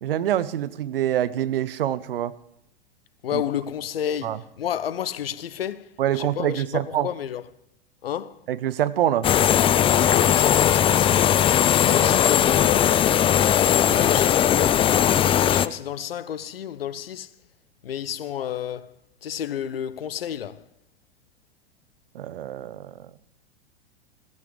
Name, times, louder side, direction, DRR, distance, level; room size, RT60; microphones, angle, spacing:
voice 1, 0.0-2.4 3.3-3.4 4.2-4.4 6.0-7.1 8.5-9.3 22.1-23.1, right 11 dB, 65° right, 0.9 m, -25 dB
voice 2, 3.2-7.4 8.0-8.4 10.1-13.1 13.9-17.3 17.8-19.0 19.2-20.6, left 10 dB, 70° left, 0.9 m, -31 dB
sound 1, 9.2-15.7, left 10 dB, 20° left, 0.5 m, -19 dB
17.0 x 15.5 x 5.1 m
figure-of-eight pair, 95°, 31 cm